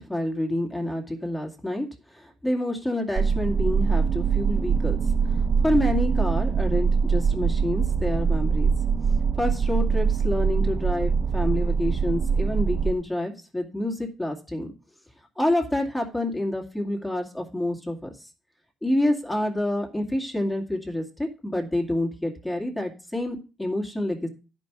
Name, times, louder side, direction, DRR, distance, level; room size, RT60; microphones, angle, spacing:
voice 1, 0.0-5.0 5.3-8.7 9.4-14.7 15.4-18.3 18.8-24.3, left 1 dB, 10° left, 0 dB, 2.2 m, -28 dB
sound 1, 3.2-12.9, right 5 dB, 45° right, 0.4 m, -23 dB
10.5 x 5.3 x 6.1 m, 0.33 s
cardioid pair, 90°, 0 cm